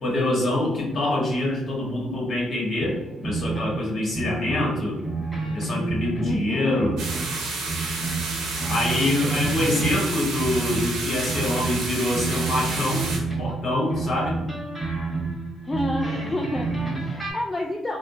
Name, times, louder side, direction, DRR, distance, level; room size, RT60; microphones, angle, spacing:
voice 1, 0.0-5.0 5.5-7.0 8.7-13.0 13.4-14.4, left 1 dB, 45° left, -3 dB, 1.4 m, -25 dB
sound 1, 2.8-3.8 4.1-6.5 6.8-7.4 7.7-10.1 10.4-13.6 13.9-17.3, right 3 dB, 10° right, 1.5 m, -29 dB
voice 2, 6.2-6.9 15.6-18.0, left 1 dB, 20° left, 0 dB, 0.4 m, -29 dB
sound 2, 7.0-13.2, right 3 dB, 70° right, 0.7 m, -30 dB
3.3 x 2.2 x 2.7 m, 1.1 s
hypercardioid pair, 45°, 0 cm